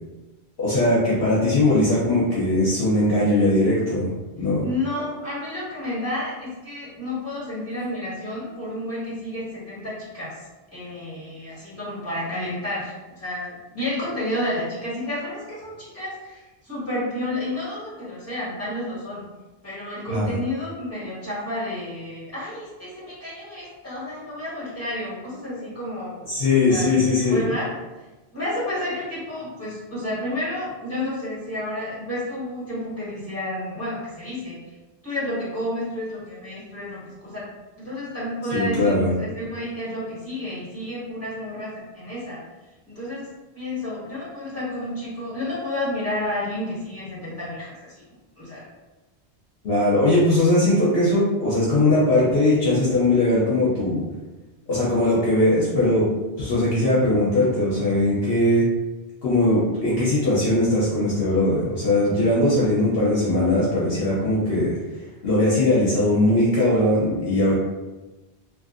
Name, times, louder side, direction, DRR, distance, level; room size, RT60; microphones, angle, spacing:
voice 1, 0.6-4.7 20.1-20.3 26.3-27.5 38.5-39.1 49.6-54.0 54.7-56.1 56.4-58.7 59.2-64.7 65.2-67.5, left 1 dB, 65° left, -8 dB, 0.9 m, -20 dB
voice 2, 4.6-10.4 10.7-19.2 19.6-26.2 26.7-27.7 28.0-28.1 28.3-34.7 35.0-37.5 37.8-42.4 42.9-48.0 48.4-48.6, left 1 dB, 15° left, -11 dB, 1.5 m, -31 dB
2.8 x 2.5 x 2.5 m, 1.1 s
omnidirectional pair, 1.1 m